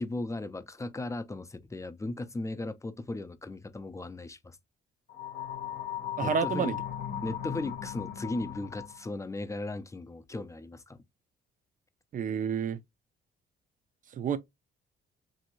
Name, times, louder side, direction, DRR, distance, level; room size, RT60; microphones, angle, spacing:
voice 1, 0.0-4.6 6.2-6.7 7.2-11.0, left 2 dB, 15° left, 0.5 m, -37 dB
sound 1, 5.1-9.1, left 10 dB, 50° left, 0.7 m, -37 dB
voice 2, 6.2-6.8 12.1-12.8 14.1-14.4, right 7 dB, 40° right, 0.5 m, -29 dB
3.1 x 2.7 x 2.9 m
cardioid pair, 90°, 20 cm